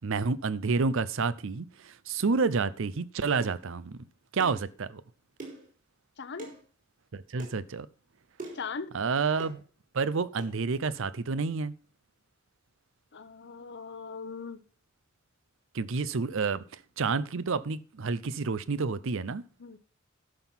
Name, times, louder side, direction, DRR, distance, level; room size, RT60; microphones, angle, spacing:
voice 1, 0.0-4.0 4.3-5.0 7.1-7.9 8.9-9.6 9.9-11.7 15.7-16.6 17.0-19.4, right 4 dB, 65° right, 0.6 m, -29 dB
sound 1, 3.4-3.6 4.4-4.7 5.4-5.7 6.4-6.6 7.4-7.6 8.4-8.7 9.4-9.6 10.4-10.5, right 3 dB, 40° right, 4.0 m, -43 dB
voice 2, 6.2-6.5 8.5-9.0 13.1-14.6 19.6-19.8, left 5 dB, 55° left, 0.8 m, -39 dB
11.5 x 6.0 x 5.6 m
head